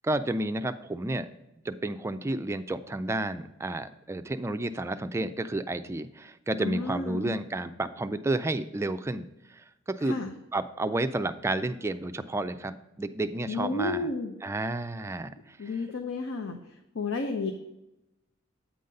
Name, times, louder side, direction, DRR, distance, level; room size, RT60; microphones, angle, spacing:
voice 1, 0.0-1.3 1.7-9.6 9.9-10.2 10.5-14.1 14.4-15.6, right 2 dB, 15° right, 10 dB, 0.3 m, -31 dB
voice 2, 6.6-7.4 10.0-10.3 13.5-14.3 15.6-16.6 16.9-17.5, left 3 dB, 75° left, 5 dB, 0.7 m, -31 dB
8.5 x 3.9 x 5.3 m, 0.92 s
head